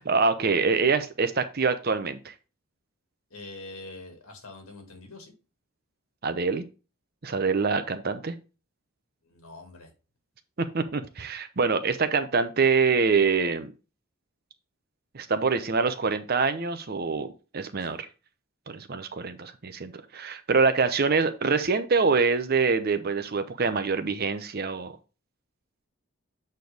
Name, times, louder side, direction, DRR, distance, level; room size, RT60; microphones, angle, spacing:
voice 1, 0.0-2.3 6.2-6.6 7.2-8.3 10.6-13.7 15.1-17.3 17.5-18.1 18.7-24.9, right 4 dB, 45° right, 10 dB, 0.7 m, -25 dB
voice 2, 3.3-5.3 9.2-9.9 17.8-18.0, left 2 dB, 75° left, 3 dB, 2.2 m, -44 dB
7.9 x 4.5 x 3.4 m, 0.33 s
head